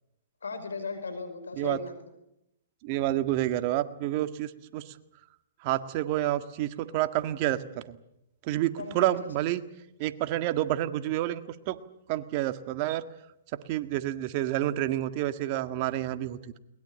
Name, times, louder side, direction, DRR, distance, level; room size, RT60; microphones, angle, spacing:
voice 1, 0.4-1.9 8.8-9.3, left 4 dB, 90° left, 9 dB, 5.3 m, -36 dB
voice 2, 2.8-4.9 5.6-8.0 8.4-9.6 10.0-11.8 12.1-13.0 13.7-16.4, right 14 dB, 45° right, 11 dB, 1.7 m, -29 dB
22.0 x 20.5 x 8.8 m, 0.85 s
hypercardioid pair, 130°, 0 cm